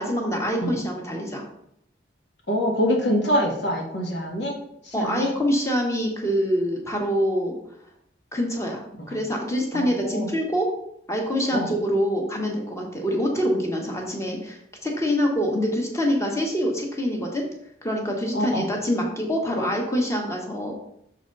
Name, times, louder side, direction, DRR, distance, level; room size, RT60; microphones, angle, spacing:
voice 1, 0.0-1.4 4.9-7.6 8.3-10.7 11.1-14.6 14.8-17.4 17.8-20.7, equal, 15° left, 0 dB, 1.3 m, -25 dB
voice 2, 2.5-4.6 4.9-5.3 9.0-9.1 9.7-10.3 11.5-11.7 18.3-18.7, equal, 80° left, 0 dB, 1.9 m, -25 dB
6.6 x 4.1 x 5.4 m, 0.75 s
head